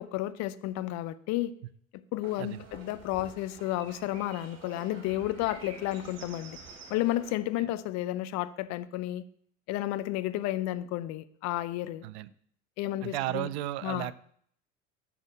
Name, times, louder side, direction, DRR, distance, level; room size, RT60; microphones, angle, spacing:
voice 1, 0.0-1.5 2.1-6.6 6.9-9.2 9.7-12.1 12.8-13.5 13.8-14.1, left 15 dB, 45° left, 14 dB, 0.6 m, -32 dB
sound 1, 2.2-7.4, right 4 dB, 45° right, 3.1 m, -49 dB
voice 2, 13.0-14.1, right 15 dB, 60° right, 17 dB, 0.5 m, -34 dB
7.1 x 6.2 x 6.0 m, 0.62 s
figure-of-eight pair, 75°, 37 cm